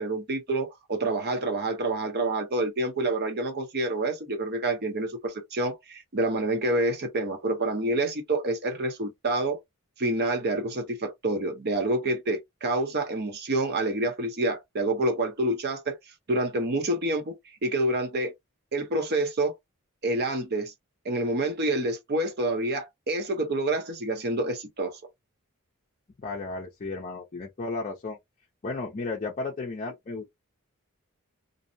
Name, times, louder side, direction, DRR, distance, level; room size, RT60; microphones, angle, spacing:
voice 1, 0.0-9.6 10.0-16.0 16.3-17.4 17.6-18.3 18.7-19.5 20.0-20.7 21.0-25.0, right 2 dB, 45° right, 0.7 m, -27 dB
voice 2, 26.2-28.2 28.6-30.3, left 3 dB, 35° left, 0.5 m, -34 dB
2.6 x 2.0 x 2.6 m
head